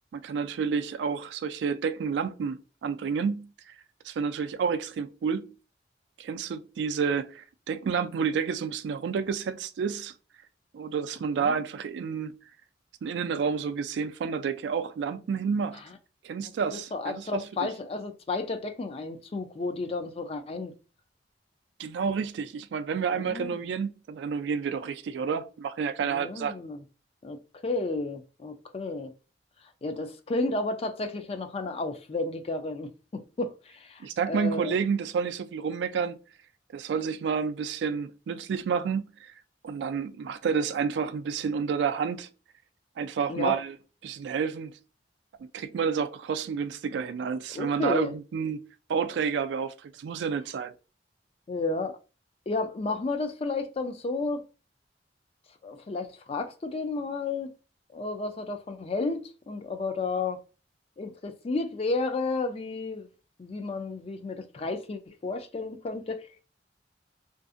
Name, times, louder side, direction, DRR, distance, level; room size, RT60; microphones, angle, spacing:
voice 1, 0.1-3.7 4.0-5.5 6.2-10.1 10.7-12.3 13.0-15.8 16.2-17.7 21.8-26.5 34.0-36.2 36.7-39.3 39.6-42.3 43.0-43.8 44.0-44.8 45.5-48.6 48.9-50.7, right 6 dB, 75° right, 0.3 m, -30 dB
voice 2, 16.7-20.7 23.1-23.7 26.0-26.8 27.2-29.1 29.8-34.8 43.3-43.6 47.5-48.1 51.5-52.0 52.5-54.4 55.6-57.5 57.9-60.4 61.0-63.1 63.4-66.4, left 3 dB, 35° left, 0.3 m, -32 dB
2.6 x 2.4 x 2.4 m
head